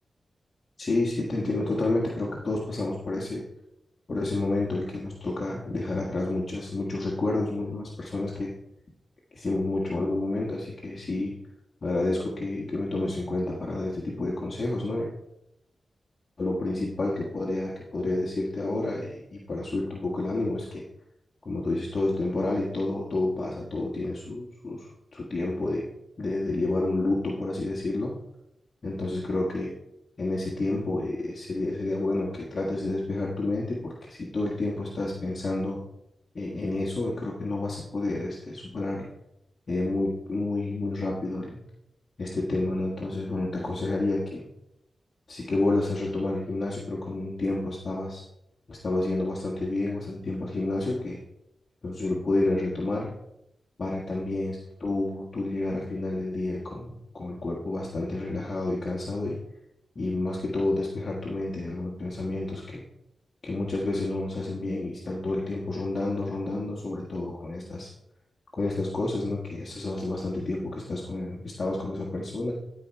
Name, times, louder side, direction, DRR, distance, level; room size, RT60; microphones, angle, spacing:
voice 1, 0.8-3.4 4.1-8.5 9.3-11.3 11.8-15.1 16.4-20.8 21.4-25.8 26.2-28.2 28.8-29.7 30.2-35.8 36.3-39.1 39.7-41.6 42.2-44.4 45.3-48.2 48.7-51.2 51.8-53.2 53.8-59.4 59.9-62.8 63.4-67.9 68.5-72.5, left 2 dB, 50° left, -3 dB, 1.7 m, -29 dB
14.0 x 4.9 x 4.6 m, 0.82 s
cardioid pair, 65°, 0 cm